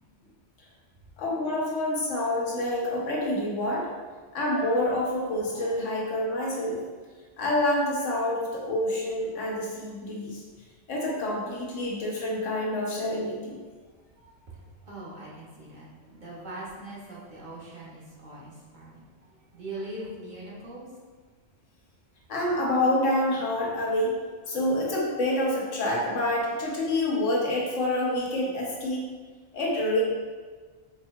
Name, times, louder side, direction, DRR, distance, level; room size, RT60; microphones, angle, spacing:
voice 1, 1.2-3.9 4.3-6.8 7.4-10.4 10.9-13.6 22.3-24.2 24.5-29.0 29.5-30.0, left 1 dB, 85° left, -3 dB, 1.2 m, -27 dB
voice 2, 14.2-20.9, right 1 dB, 45° right, -7 dB, 0.8 m, -42 dB
4.6 x 2.7 x 2.3 m, 1.4 s
omnidirectional pair, 1.2 m